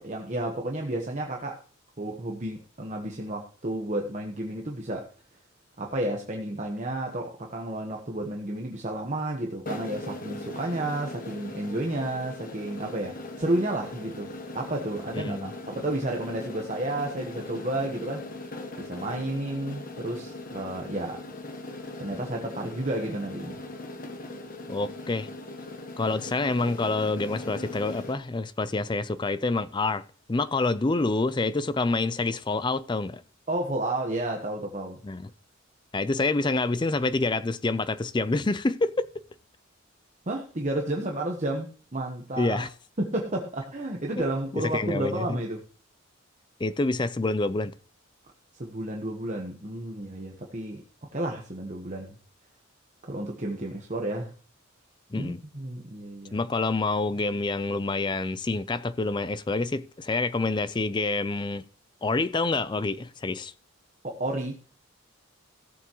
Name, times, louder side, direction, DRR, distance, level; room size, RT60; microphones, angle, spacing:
voice 1, 0.0-1.6 2.0-5.1 5.8-18.3 18.5-21.2 22.0-23.6 33.5-35.0 40.3-42.7 43.0-45.6 48.5-50.8 51.1-52.2 53.1-54.3 55.2-56.4 64.0-64.5, right 1 dB, 35° right, 1.1 m, -31 dB
sound 1, 9.7-28.2, left 2 dB, 40° left, 1.1 m, -39 dB
voice 2, 15.1-15.5 24.7-25.3 26.0-30.0 30.3-33.2 35.0-35.3 35.9-39.1 42.4-42.7 44.5-45.4 46.6-47.7 55.1-55.4 56.3-61.6 62.0-63.5, left 3 dB, 20° left, 0.4 m, -27 dB
16.0 x 7.1 x 3.0 m
head